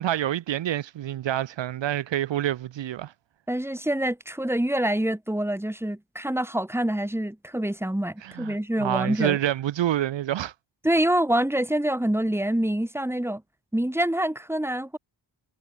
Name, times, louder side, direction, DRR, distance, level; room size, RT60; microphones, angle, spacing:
voice 1, 0.0-3.1 8.2-10.5, right 12 dB, 75° right, 0.7 m, -27 dB
voice 2, 3.5-9.4 10.8-13.4 13.7-15.0, right 1 dB, 5° right, 3.4 m, -26 dB
wide cardioid pair, 160°, 44 cm